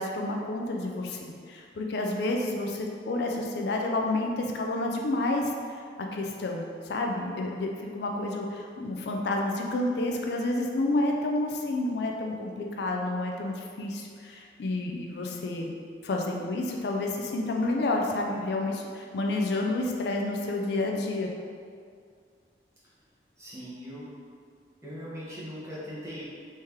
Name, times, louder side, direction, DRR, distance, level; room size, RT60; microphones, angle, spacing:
voice 1, 0.0-5.5 6.1-15.7 16.0-21.3, left 2 dB, 65° left, 1 dB, 0.3 m, -30 dB
voice 2, 23.4-24.1 24.8-26.2, equal, 15° right, -9 dB, 0.9 m, -40 dB
3.2 x 2.8 x 3.5 m, 2.2 s
head